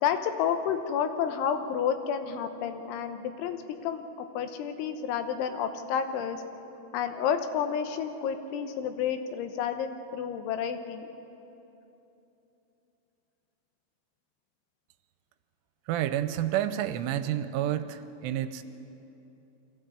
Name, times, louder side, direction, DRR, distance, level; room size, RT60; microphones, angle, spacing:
voice 1, 0.0-3.6 3.8-6.4 6.9-11.1, left 8 dB, 90° left, 7 dB, 3.4 m, -30 dB
voice 2, 15.9-18.6, right 11 dB, 85° right, 11 dB, 3.2 m, -29 dB
23.5 x 15.5 x 8.3 m, 3.0 s
omnidirectional pair, 5.5 m